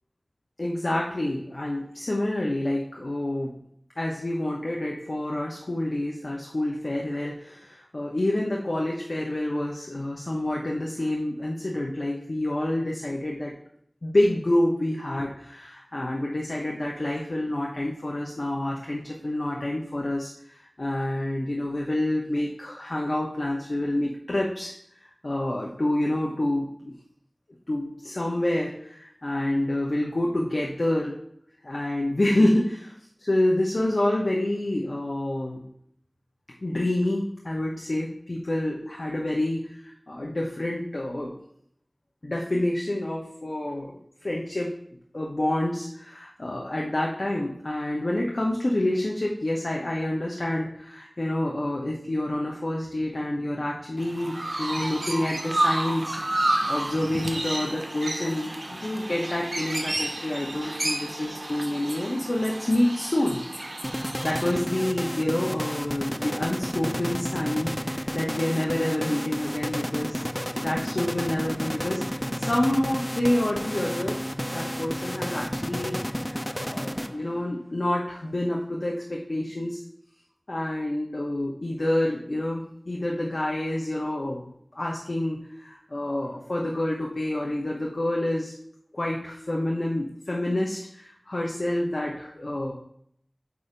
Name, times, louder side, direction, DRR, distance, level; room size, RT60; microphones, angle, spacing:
voice 1, 0.6-3.5 4.0-13.5 14.0-24.7 25.2-26.9 27.7-31.1 31.6-32.9 33.2-35.6 36.6-41.4 42.2-44.7 45.1-63.4 63.9-70.2 70.5-74.2 74.5-79.8 80.5-88.5 88.9-92.7, left 1 dB, 70° left, -2 dB, 0.9 m, -28 dB
Chirp tweet, 54.0-64.6, right 1 dB, 65° right, 0.8 m, -30 dB
sound 1, 63.8-77.5, equal, 10° left, 0.4 m, -32 dB
8.4 x 2.8 x 5.1 m, 0.69 s
wide cardioid pair, 45°, 0 cm